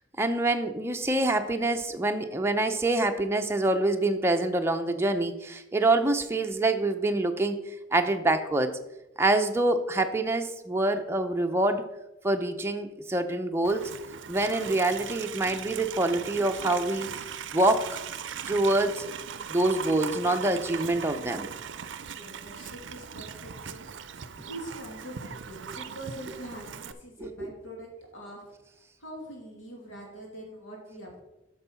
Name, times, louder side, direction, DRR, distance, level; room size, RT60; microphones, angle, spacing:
voice 1, 0.2-7.6 7.9-8.8 9.2-11.9 12.2-13.9 14.3-17.1 17.5-17.9 18.5-19.0 19.5-21.5, right 2 dB, 15° right, 5 dB, 0.6 m, -26 dB
Livestock farm animals working animals, 13.6-26.9, right 7 dB, 70° right, 0.5 m, -39 dB
voice 2, 22.1-28.5 29.0-31.2, right 1 dB, 80° left, -1 dB, 2.9 m, -44 dB
8.4 x 6.2 x 5.7 m, 0.94 s
head